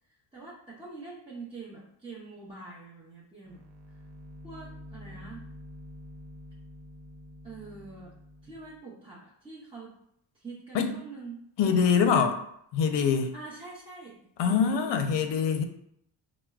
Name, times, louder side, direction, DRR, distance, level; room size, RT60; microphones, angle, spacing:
voice 1, 0.3-3.6 4.4-5.5 7.4-8.1 8.4-9.9 10.3-12.3 13.3-14.2 14.4-15.1, right 4 dB, 10° right, -9 dB, 0.7 m, -44 dB
sound 1, 3.4-8.8, left 1 dB, 65° right, 0.6 m, -47 dB
voice 2, 11.6-12.3 12.7-13.3 14.4-15.6, left 6 dB, 65° left, 7 dB, 0.5 m, -24 dB
4.4 x 2.1 x 2.3 m, 0.73 s
cardioid pair, 110°, 47 cm